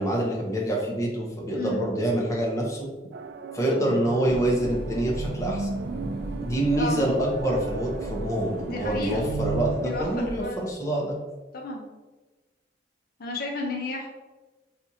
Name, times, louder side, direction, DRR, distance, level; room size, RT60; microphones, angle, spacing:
voice 1, 0.0-2.9 3.5-5.7 6.4-11.2, right 1 dB, 20° left, -2 dB, 0.7 m, -26 dB
voice 2, 1.5-1.9 6.7-7.0 8.7-9.3 9.8-10.6 11.5-11.9 13.2-14.1, left 2 dB, 55° left, 0 dB, 0.6 m, -32 dB
sound 1, 3.1-10.0, right 4 dB, 70° right, 0.3 m, -35 dB
sound 2, 4.2-10.4, equal, 15° right, 1.1 m, -37 dB
4.3 x 2.4 x 2.7 m, 1.2 s
head